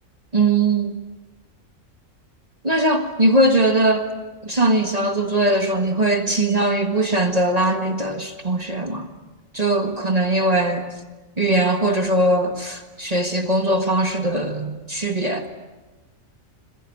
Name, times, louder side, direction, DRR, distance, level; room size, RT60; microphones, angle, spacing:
voice 1, 0.3-1.0 2.6-4.1 4.4-9.1 9.5-10.9 11.4-15.5, right 2 dB, 30° right, 5 dB, 1.8 m, -20 dB
27.0 x 21.5 x 8.8 m, 1.2 s
omnidirectional pair, 1.4 m